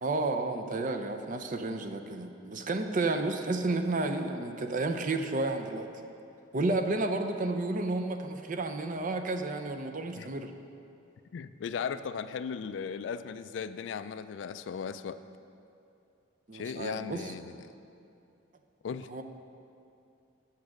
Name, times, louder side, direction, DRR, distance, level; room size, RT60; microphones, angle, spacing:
voice 1, 0.0-5.9 6.5-10.5 16.5-17.4 19.1-19.2, right 2 dB, 45° right, 6 dB, 0.5 m, -31 dB
voice 2, 11.3-15.2 16.5-17.6 18.8-19.1, left 6 dB, 65° left, 12 dB, 0.3 m, -37 dB
8.5 x 5.9 x 6.3 m, 2.6 s
head